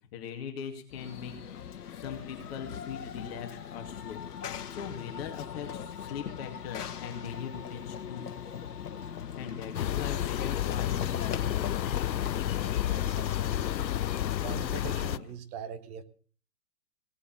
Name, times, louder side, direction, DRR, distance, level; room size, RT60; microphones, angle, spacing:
voice 1, 0.1-1.3 1.9-8.3 9.1-11.9 12.9-13.0, left 7 dB, 35° left, 4 dB, 2.4 m, -41 dB
Run / Train, 0.9-15.3, left 8 dB, 65° left, 1.8 m, -40 dB
sound 1, 9.7-15.2, left 12 dB, 90° left, 0.7 m, -31 dB
voice 2, 12.8-13.9 14.4-16.0, right 7 dB, 15° right, 10 dB, 0.8 m, -42 dB
17.5 x 8.2 x 7.3 m, 0.43 s
hypercardioid pair, 145°, 50 cm